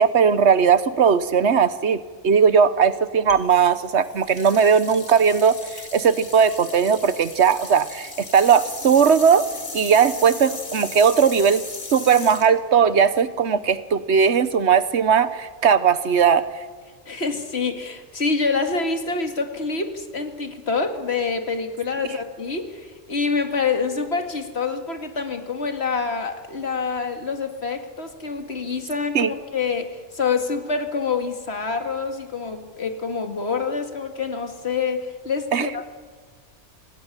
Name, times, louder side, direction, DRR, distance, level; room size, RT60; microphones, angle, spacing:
voice 1, 0.0-9.5 9.7-11.6 11.9-16.4 29.1-29.3 35.5-35.7, right 6 dB, 70° right, 14 dB, 1.3 m, -18 dB
sound 1, 3.3-13.5, left 3 dB, 85° left, 2.7 m, -37 dB
voice 2, 17.1-35.8, left 4 dB, 65° left, 6 dB, 2.3 m, -26 dB
26.5 x 16.5 x 9.8 m, 1.5 s
omnidirectional pair, 1.2 m